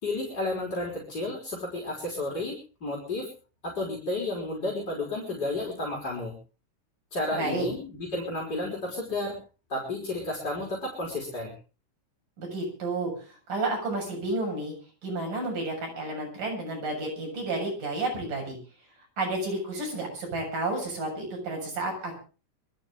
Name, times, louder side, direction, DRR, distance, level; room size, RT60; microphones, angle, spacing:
voice 1, 0.0-3.3 3.6-6.3 7.1-9.4 9.7-11.5, left 2 dB, 30° left, -4 dB, 5.6 m, -32 dB
voice 2, 7.3-7.7 12.4-13.1 13.5-14.7 15.0-18.6 19.2-22.1, right 2 dB, 90° right, 1 dB, 8.9 m, -31 dB
24.0 x 14.5 x 3.7 m, 0.36 s
omnidirectional pair, 3.7 m